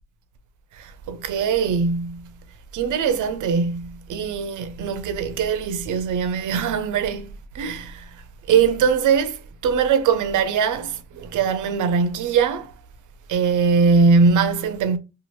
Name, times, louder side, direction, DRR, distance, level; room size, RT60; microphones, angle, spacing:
voice 1, 0.7-2.3 2.7-8.1 8.5-12.7 13.3-15.0, right 5 dB, 70° right, 0.5 m, -21 dB
2.6 x 2.4 x 2.9 m
supercardioid pair, 65°, 32 cm